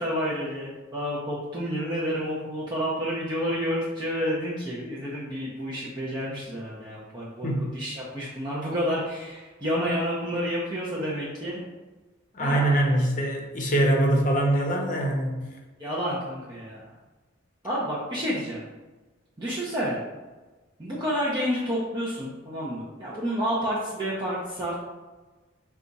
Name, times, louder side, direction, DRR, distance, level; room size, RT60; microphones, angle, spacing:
voice 1, 0.0-11.6 12.4-12.7 15.8-16.8 17.6-18.6 19.4-20.0 20.8-24.8, equal, 20° right, -7 dB, 0.6 m, -29 dB
voice 2, 12.3-15.4, right 1 dB, 40° left, 1 dB, 0.7 m, -23 dB
4.1 x 2.3 x 3.9 m, 1.2 s
head